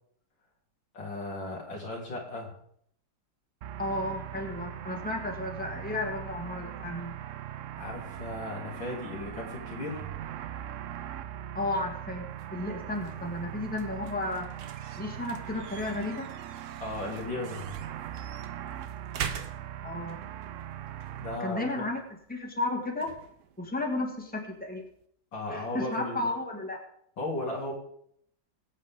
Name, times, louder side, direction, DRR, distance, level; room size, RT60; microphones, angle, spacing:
voice 1, 0.9-2.5 7.8-10.0 16.8-17.8 21.2-21.8 25.3-26.2 27.2-27.7, left 2 dB, 80° left, -3 dB, 4.1 m, -36 dB
sound 1, 3.6-21.4, right 11 dB, 80° right, 0.6 m, -40 dB
voice 2, 3.8-7.2 11.5-14.5 15.0-16.3 19.8-20.2 21.4-22.0 22.3-23.1 23.6-24.8 25.5-26.8, left 2 dB, 5° left, 0 dB, 2.2 m, -33 dB
sound 2, 12.3-25.1, right 8 dB, 65° right, 1.5 m, -45 dB
22.0 x 8.4 x 3.8 m, 0.67 s
omnidirectional pair, 2.0 m